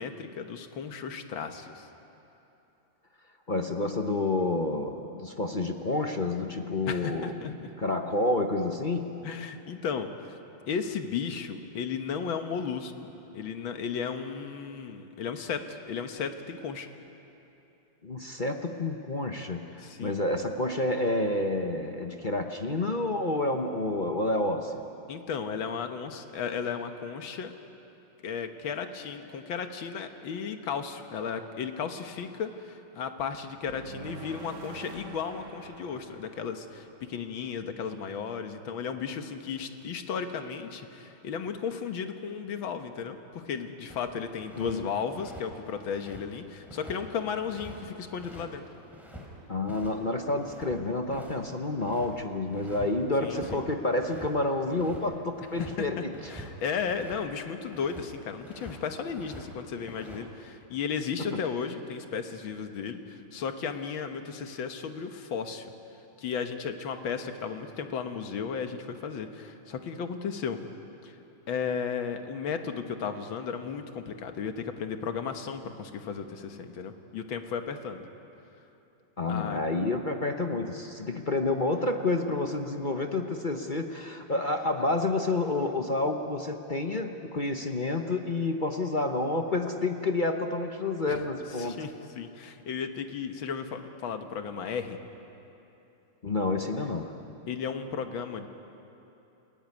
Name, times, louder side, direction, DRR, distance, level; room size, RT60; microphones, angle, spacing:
voice 1, 0.0-1.9 6.9-7.7 9.2-10.4 10.7-16.9 19.8-20.2 25.1-27.5 28.2-48.6 53.2-53.6 55.8-65.7 66.2-70.6 71.0-71.1 71.5-78.1 79.3-79.6 91.1-91.2 91.5-95.0 97.5-98.5, left 6 dB, 85° left, 7 dB, 2.0 m, -35 dB
voice 2, 3.5-7.5 7.8-9.2 18.0-24.8 44.6-44.9 49.5-56.1 61.3-61.4 79.2-91.8 96.2-97.1, left 2 dB, 35° left, 4 dB, 0.8 m, -29 dB
sound 1, 33.6-37.7, right 4 dB, 60° right, 2.2 m, -47 dB
sound 2, 43.9-44.8 45.1-49.3 49.6-49.9 50.2-52.1 52.5-52.9 53.1-53.6 53.9-57.3 57.6-58.0 58.4-59.5 59.7-60.2, equal, ahead, 4.1 m, -46 dB
29.5 x 15.5 x 9.5 m, 2.9 s
omnidirectional pair, 2.1 m